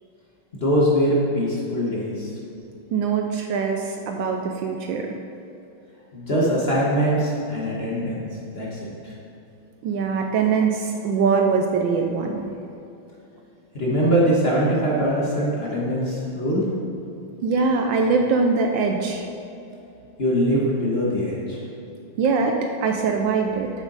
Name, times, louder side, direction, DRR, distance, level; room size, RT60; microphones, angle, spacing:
voice 1, 0.5-2.3 6.1-8.2 8.5-9.1 13.7-16.6 20.2-21.6, equal, 35° left, -6 dB, 1.3 m, -22 dB
voice 2, 2.9-5.1 9.8-12.5 17.4-19.2 22.2-23.7, right 5 dB, 75° right, 3 dB, 1.2 m, -22 dB
8.3 x 7.0 x 4.0 m, 2.8 s
omnidirectional pair, 2.3 m